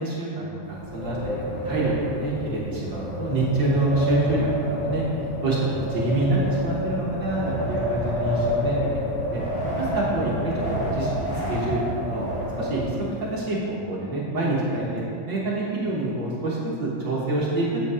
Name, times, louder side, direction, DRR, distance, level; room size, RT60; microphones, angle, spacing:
voice 1, 0.0-1.3 1.6-5.0 5.4-8.8 9.2-9.4 9.8-12.2 12.6-12.8 13.2-15.0 15.3-17.9, right 2 dB, 55° right, -5 dB, 1.3 m, -26 dB
Wind, 0.7-13.3, equal, 75° left, 4.1 m, -29 dB
8.5 x 8.4 x 4.9 m, 2.8 s
omnidirectional pair, 3.8 m